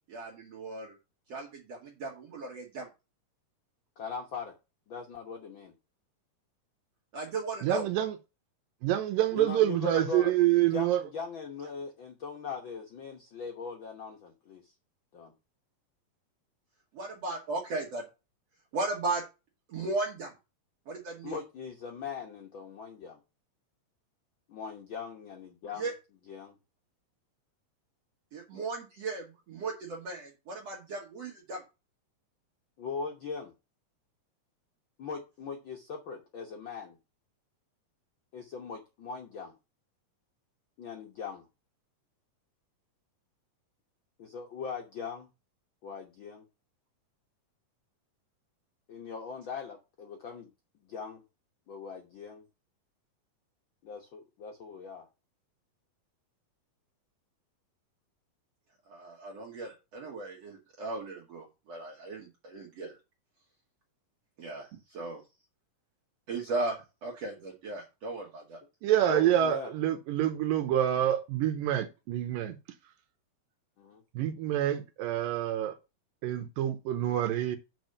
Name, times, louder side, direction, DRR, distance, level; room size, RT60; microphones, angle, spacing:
voice 1, 0.1-0.9 1.3-2.9 7.1-7.9 16.9-18.0 18.7-19.2 19.7-20.3 20.9-21.4 25.8-25.9 28.3-31.6 58.9-63.0 64.4-65.2 66.3-68.6, right 3 dB, 55° right, 2.3 m, -36 dB
voice 2, 4.0-4.5 4.9-5.7 9.3-10.3 10.7-14.7 15.1-15.3 21.2-23.2 24.5-25.9 26.3-26.6 32.8-33.5 35.0-37.0 38.3-39.5 40.8-41.5 44.2-45.3 45.8-46.4 48.9-50.5 50.8-51.2 51.7-52.4 53.8-55.1 69.1-69.7 73.8-74.0, left 5 dB, 70° left, 1.1 m, -40 dB
voice 3, 7.6-8.2 8.8-11.0 68.8-72.6 74.2-75.8 76.2-77.6, right 12 dB, 85° right, 2.4 m, -27 dB
6.1 x 4.9 x 6.5 m
omnidirectional pair, 4.0 m